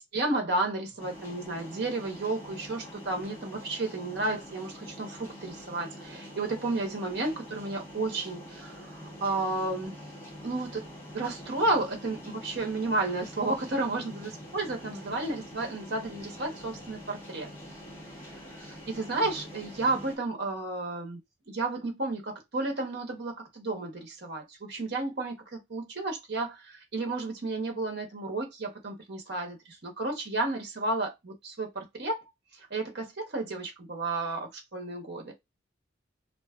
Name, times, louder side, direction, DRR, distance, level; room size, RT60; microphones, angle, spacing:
voice 1, 0.1-10.0 10.4-10.8 11.1-17.5 18.6-21.2 21.5-32.2 32.6-35.3, right 2 dB, 60° right, 0.9 m, -32 dB
sound 1, 1.0-20.2, equal, 15° left, 1.1 m, -45 dB
2.5 x 2.3 x 2.4 m
head